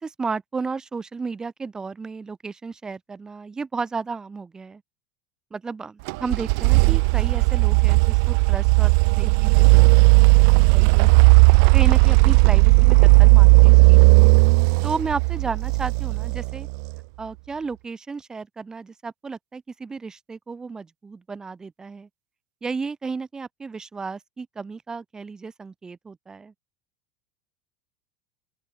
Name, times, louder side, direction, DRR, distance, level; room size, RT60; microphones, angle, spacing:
voice 1, 0.0-4.8 5.5-10.4 10.7-11.1 11.7-14.3 14.8-16.7 17.2-22.1 22.6-26.5, right 4 dB, 20° right, 4.5 m, -33 dB
sound 1, 6.1-16.9, right 33 dB, 55° right, 1.2 m, -15 dB
open air
figure-of-eight pair, 75°, 4 cm